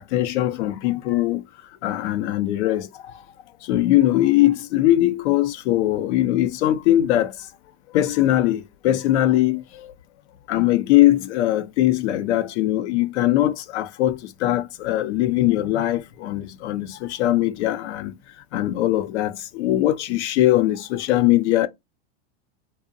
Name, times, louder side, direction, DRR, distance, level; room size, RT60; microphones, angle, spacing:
voice 1, 0.0-1.4 1.8-3.2 3.6-7.5 7.9-9.9 10.5-18.1 18.5-21.7, left 14 dB, 80° left, 0.5 m, -21 dB
2.6 x 2.0 x 2.5 m
supercardioid pair, 125°, 34 cm